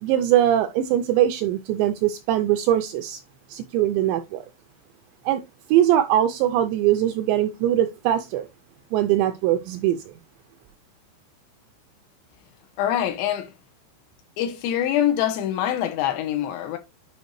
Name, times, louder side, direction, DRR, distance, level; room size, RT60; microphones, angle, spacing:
voice 1, 0.0-3.2 3.5-4.4 5.3-5.4 5.7-8.5 8.9-10.1, right 12 dB, 85° right, 2.6 m, -21 dB
voice 2, 12.8-13.5 14.4-16.8, left 11 dB, 80° left, 2.9 m, -24 dB
9.2 x 5.0 x 3.1 m
omnidirectional pair, 5.6 m